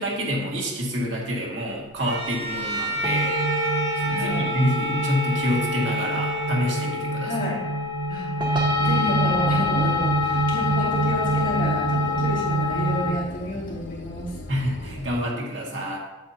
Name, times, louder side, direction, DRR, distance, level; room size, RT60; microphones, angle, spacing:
voice 1, 0.0-3.3 4.1-7.3 14.5-16.0, equal, 80° right, -2 dB, 2.0 m, -27 dB
Bowed string instrument, 2.0-7.3, right 2 dB, 60° right, 1.1 m, -30 dB
sound 1, 3.0-13.1, equal, 25° right, 1.0 m, -25 dB
voice 2, 4.0-4.5 7.2-7.7 8.1-8.4 8.7-14.4, equal, 45° left, -6 dB, 2.5 m, -30 dB
sound 2, 8.5-15.2, left 1 dB, 80° left, 0.7 m, -38 dB
8.7 x 7.8 x 2.8 m, 1.0 s
head